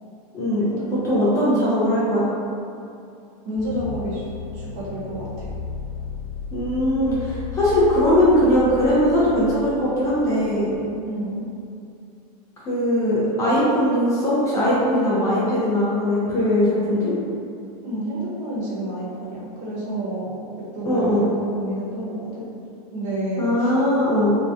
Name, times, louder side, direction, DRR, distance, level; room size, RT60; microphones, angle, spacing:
voice 1, 0.3-0.7 1.0-2.3 6.5-10.7 12.7-17.1 20.8-21.3 23.4-24.4, equal, 15° left, -9 dB, 0.3 m, -20 dB
voice 2, 3.4-5.5 11.0-11.5 17.8-22.4 22.9-23.7, right 1 dB, 55° right, -7 dB, 0.8 m, -30 dB
sound 1, 3.5-10.8, left 6 dB, 60° left, 0.7 m, -35 dB
2.6 x 2.1 x 2.4 m, 2.5 s
supercardioid pair, 155°, 20 cm